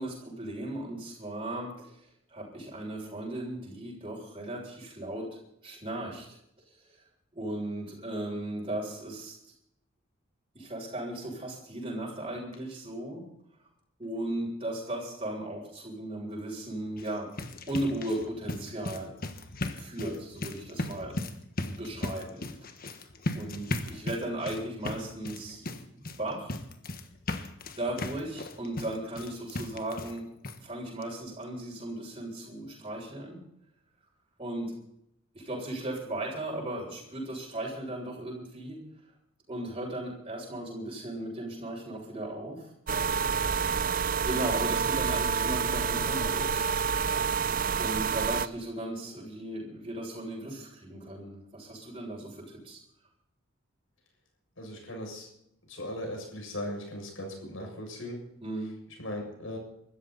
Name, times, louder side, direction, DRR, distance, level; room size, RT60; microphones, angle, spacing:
voice 1, 0.0-1.9 2.3-5.3 5.6-6.3 7.3-9.4 10.5-13.2 14.0-17.3 17.7-19.1 19.7-21.2 21.6-22.5 23.3-25.7 25.9-26.6 27.8-30.3 30.6-33.4 34.4-34.7 35.3-38.8 39.5-42.7 44.1-46.7 47.8-52.8 58.4-58.7, right 1 dB, 25° right, -4 dB, 7.1 m, -36 dB
sound 1, 16.9-30.2 30.4-30.6 31.0-31.1 31.4-31.5, left 2 dB, 45° left, 1.5 m, -37 dB
sound 2, 42.9-48.5, right 6 dB, 45° right, 0.6 m, -28 dB
voice 2, 47.4-47.7 54.6-55.3 55.7-58.2 59.0-59.6, left 1 dB, 70° left, 1 dB, 7.2 m, -38 dB
24.5 x 13.5 x 4.2 m, 0.75 s
head